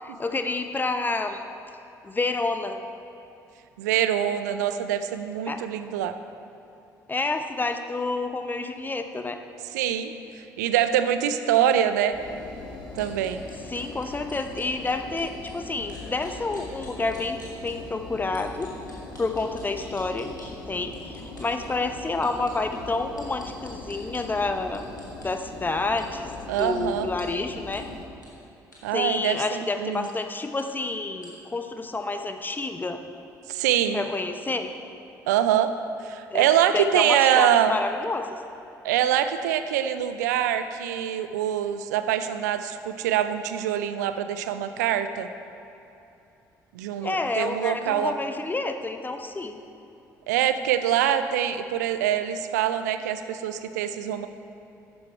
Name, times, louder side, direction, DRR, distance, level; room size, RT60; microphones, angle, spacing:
voice 1, 0.0-1.4 2.0-2.8 5.5-5.6 7.1-9.4 13.7-18.7 19.2-24.8 25.2-26.3 26.6-27.8 28.9-33.0 33.9-34.7 36.3-36.5 36.7-38.4 47.0-49.6, left 3 dB, 20° left, 7 dB, 0.9 m, -29 dB
voice 2, 3.8-6.1 9.7-12.2 12.9-13.4 26.5-27.1 28.8-30.1 33.5-34.0 35.3-35.7 36.0-37.8 38.8-45.3 46.7-48.1 50.3-54.3, right 10 dB, 70° right, 10 dB, 0.5 m, -24 dB
Engine, 12.1-28.0, left 2 dB, 55° left, 1.7 m, -41 dB
sound 1, 13.0-15.5 15.9-17.7 18.3-20.5 20.9-21.7 22.2-24.2 24.7-25.3 26.0-26.1 26.6-26.7 27.2-27.3 27.7-27.8 28.2-28.3 28.7-28.8 29.2-29.4 30.0-30.1 30.6-30.7 31.2-31.3, left 1 dB, 90° left, 1.5 m, -49 dB
11.5 x 9.6 x 4.4 m, 2.8 s
figure-of-eight pair, 45°, 10 cm